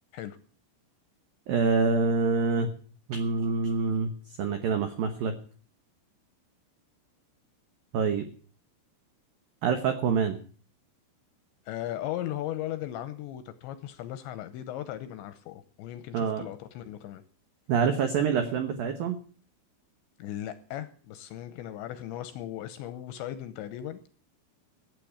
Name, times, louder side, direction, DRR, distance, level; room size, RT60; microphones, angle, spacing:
voice 1, 1.5-2.7 3.1-4.1 4.4-5.3 7.9-8.2 9.6-10.4 16.1-16.5 17.7-19.2, right 5 dB, 80° right, 7 dB, 2.0 m, -26 dB
voice 2, 11.7-17.2 20.2-24.0, left 12 dB, 75° left, 12 dB, 2.8 m, -37 dB
15.5 x 8.5 x 8.5 m, 0.43 s
omnidirectional pair, 5.9 m